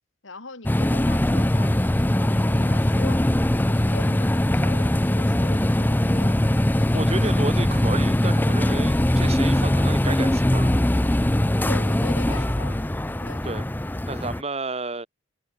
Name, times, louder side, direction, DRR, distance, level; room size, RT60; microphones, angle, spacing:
voice 1, 0.2-3.3 3.5-6.4 6.7-7.2 11.6-12.8 13.2-13.5, left 3 dB, 80° left, 2.9 m, -41 dB
sound 1, 0.7-14.4, left 1 dB, 10° left, 0.5 m, -21 dB
voice 2, 6.9-10.8 12.7-12.8 13.4-13.6 14.1-15.1, right 2 dB, 30° right, 2.3 m, -31 dB
head